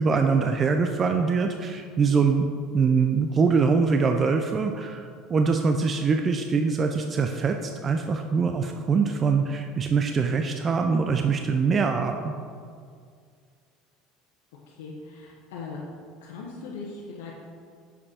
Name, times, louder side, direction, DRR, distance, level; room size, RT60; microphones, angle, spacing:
voice 1, 0.0-12.3, right 5 dB, 30° right, 5 dB, 0.4 m, -23 dB
voice 2, 14.7-15.8 16.2-17.3, left 4 dB, 85° left, -3 dB, 0.9 m, -39 dB
6.6 x 5.1 x 4.2 m, 2.1 s
supercardioid pair, 100°, 0 cm